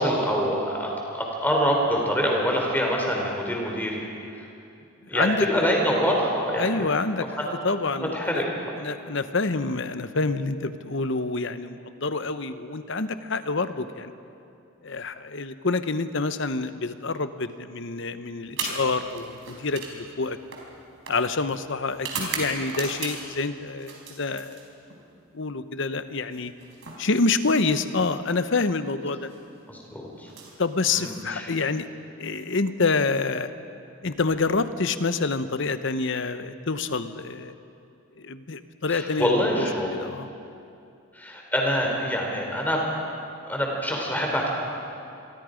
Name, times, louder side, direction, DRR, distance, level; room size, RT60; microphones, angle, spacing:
voice 1, 0.0-4.0 4.4-4.5 5.1-6.9 7.2-7.6 7.9-8.5 29.7-30.3 30.9-31.5 38.9-39.9 41.1-42.8 43.5-44.5, equal, 10° left, 0 dB, 3.5 m, -25 dB
voice 2, 5.1-5.5 6.6-8.4 8.8-14.1 14.8-20.4 21.1-24.6 25.3-26.5 27.0-29.3 30.6-31.9 32.2-33.5 34.0-37.5 38.2-39.6 40.0-40.3, left 3 dB, 60° left, 11 dB, 0.9 m, -27 dB
sound 1, 18.5-23.4 23.8-25.0 26.2-28.1 29.1-29.4 30.2-31.4, right 4 dB, 60° right, 4.3 m, -37 dB
27.0 x 23.0 x 5.1 m, 2.6 s
head